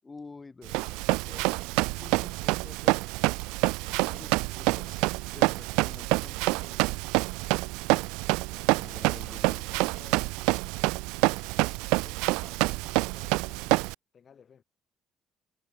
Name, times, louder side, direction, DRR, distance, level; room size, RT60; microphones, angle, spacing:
voice 1, 0.0-1.5 2.0-3.0 3.9-4.3 4.6-5.1 5.3-7.1 7.9-8.1 8.5-9.7, left 4 dB, 25° left, 7.7 m, -49 dB
Run, 0.7-13.9, right 26 dB, 85° right, 0.4 m, -27 dB
voice 2, 4.0-5.0 9.2-10.3 12.0-13.8 14.1-14.6, left 7 dB, 50° left, 7.4 m, -56 dB
supercardioid pair, 70°, 0 cm